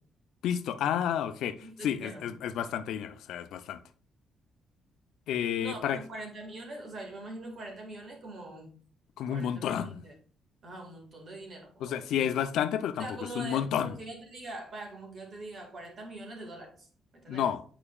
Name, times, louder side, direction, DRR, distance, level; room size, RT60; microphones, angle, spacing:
voice 1, 0.4-3.8 5.3-6.0 9.2-10.0 11.8-13.1 13.3-13.9 17.3-17.6, left 9 dB, 80° left, 0.6 m, -30 dB
voice 2, 1.6-2.3 5.6-8.7 9.3-10.2 10.6-12.3 13.0-17.5, right 2 dB, 40° right, 1.9 m, -43 dB
8.9 x 4.8 x 2.4 m
cardioid pair, 165°, 0 cm